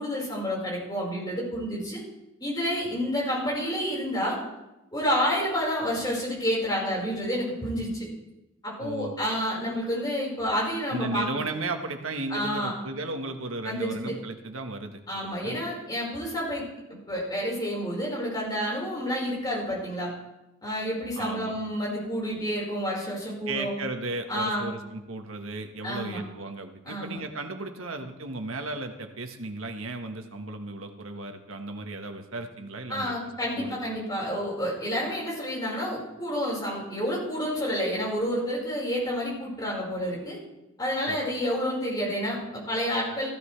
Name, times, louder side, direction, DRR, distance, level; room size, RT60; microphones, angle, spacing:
voice 1, 0.0-2.0 2.4-4.4 4.9-8.1 8.6-11.3 12.3-12.7 13.6-14.1 15.1-20.1 20.6-23.7 24.3-24.7 25.8-26.2 26.8-27.2 32.9-40.4 40.8-43.3, equal, 20° left, -4 dB, 5.0 m, -29 dB
voice 2, 8.8-9.2 10.9-15.6 21.2-21.6 23.5-33.1 33.4-33.8 41.1-41.3, right 2 dB, 80° right, 5 dB, 1.5 m, -35 dB
16.0 x 14.5 x 3.4 m, 0.95 s
head